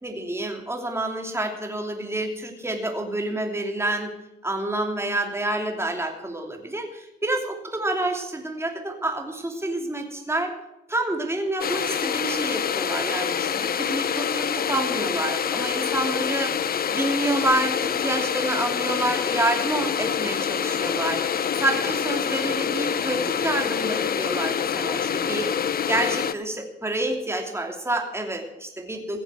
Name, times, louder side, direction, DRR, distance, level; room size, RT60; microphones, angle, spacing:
voice 1, 0.0-4.1 4.4-10.5 10.9-16.5 16.9-25.5 25.9-29.2, right 1 dB, 15° right, 3 dB, 2.9 m, -28 dB
sound 1, 11.6-26.3, left 8 dB, 50° left, 0.7 m, -26 dB
16.0 x 7.1 x 8.2 m, 0.89 s
supercardioid pair, 60°, 20 cm